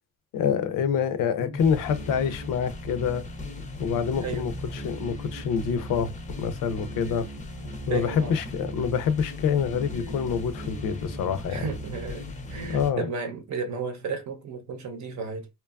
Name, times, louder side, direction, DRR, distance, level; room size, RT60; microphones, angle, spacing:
voice 1, 0.3-3.2 3.8-6.1 6.4-7.3 7.9-11.6 12.7-13.0, left 7 dB, 75° left, 0.5 m, -26 dB
sound 1, 1.4-12.9, left 1 dB, 25° left, 0.5 m, -37 dB
voice 2, 4.2-4.5 7.9-8.4 11.5-15.5, right 5 dB, 60° right, 0.7 m, -33 dB
2.9 x 2.3 x 2.2 m
cardioid pair, 125°, 33 cm